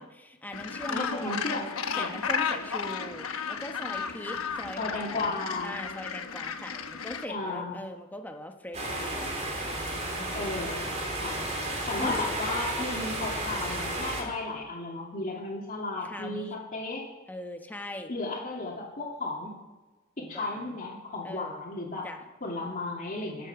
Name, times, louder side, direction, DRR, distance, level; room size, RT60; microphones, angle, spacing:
voice 1, 0.0-1.3 2.0-9.4 10.1-10.7 11.2-11.7 12.0-12.5 16.0-16.6 17.3-18.1 20.2-20.8 21.2-21.7 22.0-22.2, left 1 dB, 10° left, 4 dB, 1.2 m, -41 dB
Gull seagull, 0.5-7.2, left 6 dB, 85° left, 1.1 m, -34 dB
voice 2, 0.9-2.1 4.8-5.8 7.3-7.7 10.3-10.9 11.2-11.4 11.9-17.0 18.1-19.5 20.2-22.1 22.4-23.5, left 2 dB, 40° left, -5 dB, 2.7 m, -34 dB
sound 1, 8.7-14.2, right 1 dB, 35° right, 3.5 m, -33 dB
23.5 x 8.3 x 6.1 m, 1.2 s
head